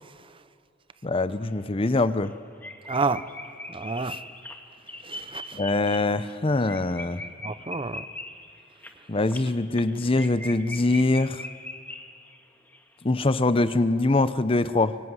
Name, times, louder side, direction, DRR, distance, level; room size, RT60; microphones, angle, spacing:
voice 1, 1.0-2.3 5.5-7.2 9.1-11.4 13.0-15.0, left 2 dB, 30° left, 0.7 m, -23 dB
Surniculus lugubris, 1.5-1.6 1.9-2.0 2.2-2.3 2.6-12.4 12.7-12.8, left 2 dB, 10° left, 1.9 m, -40 dB
voice 2, 2.9-3.2 3.7-4.2 5.0-5.6 7.4-8.0, right 4 dB, 30° right, 0.7 m, -29 dB
24.5 x 23.5 x 9.7 m
head